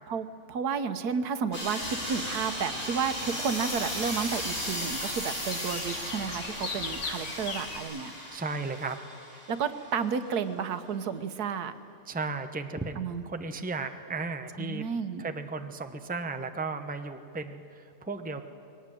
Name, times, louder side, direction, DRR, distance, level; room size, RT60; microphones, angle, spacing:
voice 1, 0.1-8.1 9.5-11.7 13.0-13.2 14.6-15.2, right 6 dB, 90° right, 11 dB, 1.5 m, -32 dB
sound 1, 1.5-10.1, equal, 30° left, 5.7 m, -36 dB
sound 2, 1.8-7.8, left 4 dB, 55° left, 1.7 m, -41 dB
voice 2, 8.3-9.0 12.1-14.9 15.2-18.4, right 3 dB, 10° right, 7 dB, 0.7 m, -35 dB
21.0 x 18.0 x 9.2 m, 2.6 s
omnidirectional pair, 1.6 m